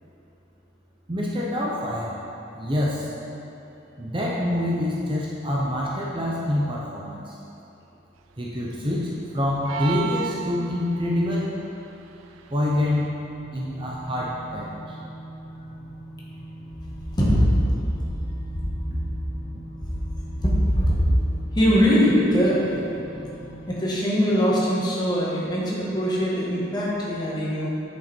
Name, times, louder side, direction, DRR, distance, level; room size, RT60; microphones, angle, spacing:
voice 1, 1.1-2.2 2.5-3.1 4.0-7.3 8.4-11.6 12.5-13.1 13.5-15.0, left 1 dB, 25° right, -4 dB, 0.7 m, -26 dB
sound 1, 9.6-11.1, right 8 dB, 85° right, 0.3 m, -32 dB
sound 2, 12.5-23.8, right 1 dB, 55° left, 0.8 m, -42 dB
voice 2, 20.4-21.0 21.5-22.6 23.7-27.7, equal, 20° left, -6 dB, 1.5 m, -21 dB
8.0 x 6.9 x 4.5 m, 2.9 s
head